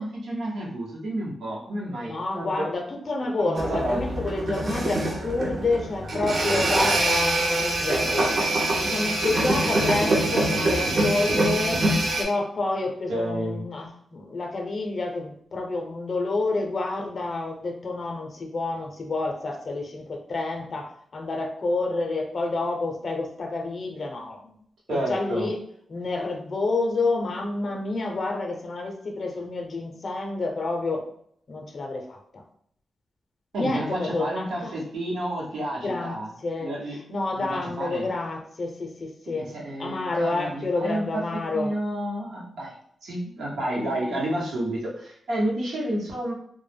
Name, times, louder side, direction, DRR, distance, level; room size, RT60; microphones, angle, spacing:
voice 1, 0.0-2.7 3.4-4.2 13.1-13.6 24.9-25.5 33.5-36.3 36.6-37.0 37.4-38.0 39.3-41.2 41.5-42.7 43.0-46.3, right 1 dB, 90° right, -4 dB, 0.8 m, -30 dB
voice 2, 2.0-8.4 8.8-11.9 12.2-24.6 24.9-25.6 25.9-31.1 31.5-32.4 33.5-34.7 35.8-36.2 36.4-36.7 37.1-39.5 39.8-41.7, left 3 dB, 45° left, 2 dB, 0.5 m, -29 dB
sound 1, 3.6-12.2, right 1 dB, 55° right, 0.5 m, -24 dB
2.1 x 2.0 x 3.2 m, 0.67 s
wide cardioid pair, 110°, 0 cm